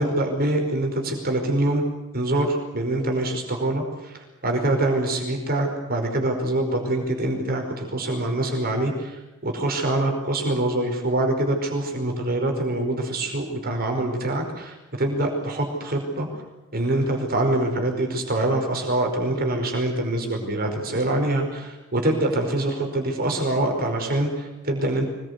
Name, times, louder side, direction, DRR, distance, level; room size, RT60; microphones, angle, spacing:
voice 1, 0.0-1.9 2.1-16.3 16.7-25.1, right 1 dB, 45° right, 2 dB, 5.1 m, -25 dB
25.5 x 21.0 x 8.3 m, 1.0 s
head